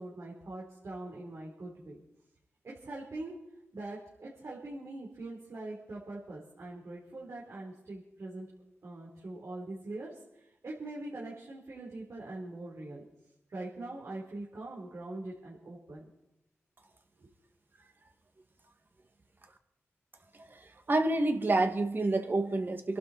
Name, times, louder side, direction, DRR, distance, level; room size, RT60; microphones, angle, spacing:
voice 1, 0.0-2.0 2.6-3.3 3.7-8.5 8.8-13.0 13.5-16.1 17.2-17.3, right 2 dB, 65° right, -4 dB, 3.8 m, -43 dB
voice 2, 20.3-23.0, right 2 dB, 45° right, 5 dB, 2.0 m, -29 dB
26.0 x 12.0 x 4.3 m, 0.86 s
wide cardioid pair, 75°, 5 cm